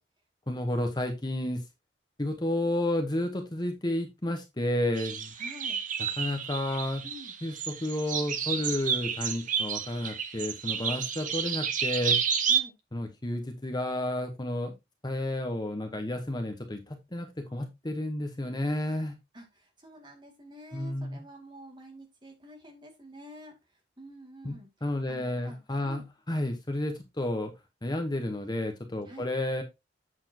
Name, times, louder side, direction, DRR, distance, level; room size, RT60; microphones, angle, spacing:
voice 1, 0.5-1.6 2.2-5.3 6.2-7.0 7.4-12.2 12.9-14.7 15.0-19.2 20.7-21.2 24.4-24.5 24.8-26.0 26.3-27.5 27.8-29.6, left 1 dB, 25° left, 5 dB, 1.1 m, -31 dB
sound 1, 5.0-12.6, right 7 dB, 45° right, 0.8 m, -30 dB
voice 2, 5.4-5.8 7.0-7.3 12.4-12.7 19.3-24.7 25.1-26.0 29.0-29.3, right 1 dB, 25° right, 2 dB, 2.2 m, -48 dB
8.0 x 6.9 x 2.9 m, 0.21 s
head